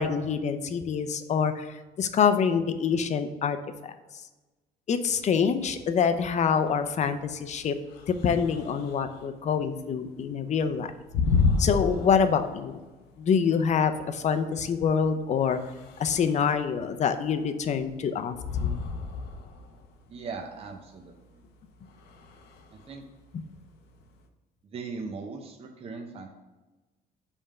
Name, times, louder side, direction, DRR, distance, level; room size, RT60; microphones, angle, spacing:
voice 1, 0.0-3.6 3.8-3.9 4.9-7.7 8.1-10.9 11.6-12.8 13.2-15.6 16.0-18.4 18.6-18.8, left 6 dB, 45° left, 9 dB, 0.6 m, -26 dB
sound 1, 5.2-24.2, left 4 dB, 85° left, 0.7 m, -33 dB
voice 2, 20.1-21.4 22.7-23.0 24.6-26.3, right 4 dB, 35° right, 3 dB, 0.7 m, -39 dB
5.5 x 3.6 x 5.4 m, 1.2 s
cardioid pair, 110°, 17 cm